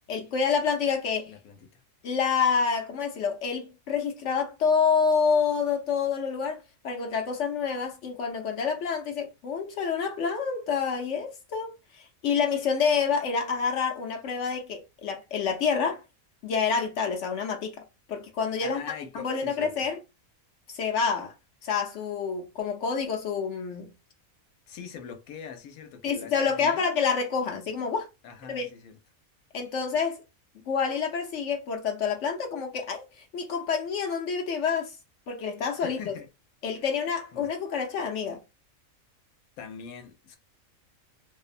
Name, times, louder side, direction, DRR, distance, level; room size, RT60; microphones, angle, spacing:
voice 1, 0.1-1.3 2.0-6.6 6.8-16.0 16.4-17.7 18.1-18.8 19.1-20.0 20.7-21.3 21.6-23.9 26.0-28.1 28.5-28.7 29.5-30.2 30.7-33.0 33.3-35.0 35.3-36.1 36.6-38.4, left 6 dB, 65° left, 0.8 m, -28 dB
voice 2, 1.3-1.8 18.6-19.7 24.7-26.9 28.2-28.9 35.8-36.3 37.3-37.5 39.6-40.4, left 7 dB, 90° left, 1.1 m, -42 dB
2.6 x 2.1 x 2.4 m
omnidirectional pair, 1.4 m